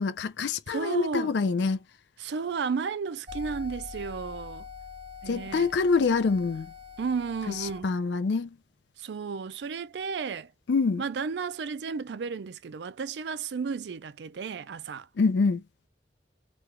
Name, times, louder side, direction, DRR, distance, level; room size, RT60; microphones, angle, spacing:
voice 1, 0.0-1.8 5.3-6.7 7.6-8.5 10.7-11.0 15.2-15.6, left 4 dB, 75° left, 0.4 m, -25 dB
voice 2, 0.7-1.3 2.2-4.7 5.2-5.7 7.0-7.9 9.0-10.5 11.0-15.1, right 5 dB, 75° right, 0.4 m, -33 dB
sound 1, 3.3-7.8, left 5 dB, 35° right, 0.7 m, -43 dB
3.1 x 2.3 x 2.9 m
head